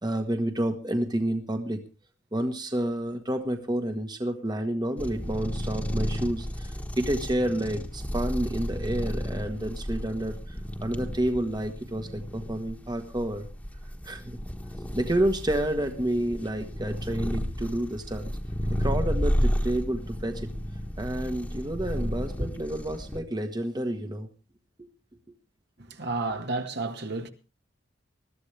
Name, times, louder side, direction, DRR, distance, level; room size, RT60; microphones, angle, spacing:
voice 1, 0.0-1.8 2.3-13.5 14.0-14.4 14.9-18.3 18.8-20.5 21.0-24.3 24.8-24.9, right 1 dB, 20° right, 1.3 m, -29 dB
sound 1, 5.0-23.2, equal, 5° left, 1.5 m, -32 dB
voice 2, 25.8-27.3, right 3 dB, 60° right, 1.7 m, -31 dB
21.0 x 13.5 x 3.3 m
head